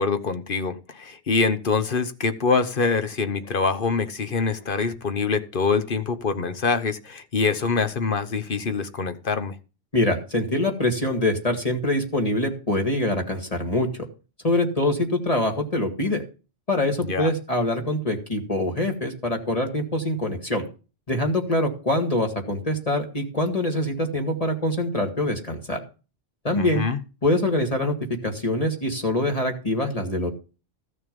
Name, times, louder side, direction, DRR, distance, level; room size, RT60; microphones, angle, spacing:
voice 1, 0.0-9.5 17.0-17.3 26.5-27.0, left 4 dB, 50° left, 1.2 m, -25 dB
voice 2, 9.9-14.1 14.4-16.2 16.7-20.7 21.1-25.8 26.4-26.8 27.2-28.0 28.2-30.3, left 1 dB, 30° left, 2.0 m, -24 dB
14.5 x 6.6 x 5.2 m
omnidirectional pair, 1.2 m